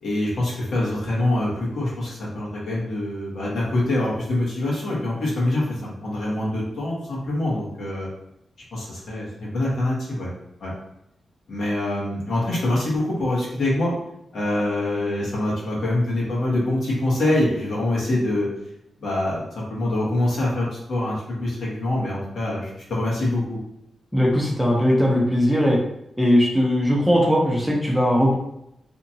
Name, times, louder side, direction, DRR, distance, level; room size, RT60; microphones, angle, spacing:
voice 1, 0.0-8.1 8.7-10.3 10.6-10.7 11.5-13.9 14.3-18.5 19.0-23.6, left 1 dB, 75° left, -6 dB, 1.2 m, -25 dB
voice 2, 24.1-25.8 26.2-28.3, equal, ahead, -3 dB, 0.6 m, -19 dB
2.8 x 2.4 x 2.7 m, 0.81 s
cardioid pair, 95°, 0 cm